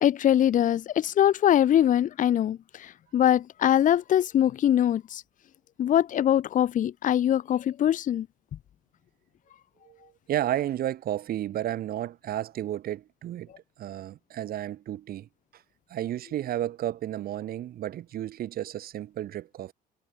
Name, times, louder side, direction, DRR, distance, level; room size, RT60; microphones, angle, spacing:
voice 1, 0.0-5.2 5.8-8.3, left 10 dB, 50° left, 0.9 m, -23 dB
voice 2, 9.8-13.5 13.8-15.6 15.9-19.7, right 12 dB, 60° right, 2.7 m, -32 dB
cardioid pair, 110°, 17 cm